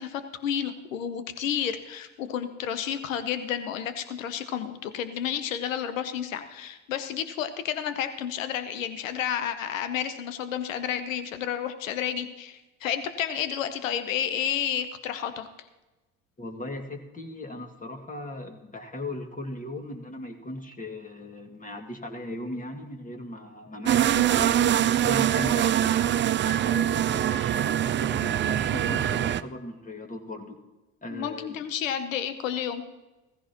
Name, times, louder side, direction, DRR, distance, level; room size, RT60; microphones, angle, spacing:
voice 1, 0.0-15.5 31.1-32.8, left 9 dB, 90° left, 10 dB, 0.9 m, -31 dB
voice 2, 16.4-26.1 26.4-30.6 31.0-31.5, left 1 dB, 20° left, 3 dB, 2.1 m, -37 dB
sound 1, 23.9-29.4, right 11 dB, 30° right, 0.4 m, -23 dB
15.5 x 15.0 x 2.9 m, 1.1 s
hypercardioid pair, 65°, 38 cm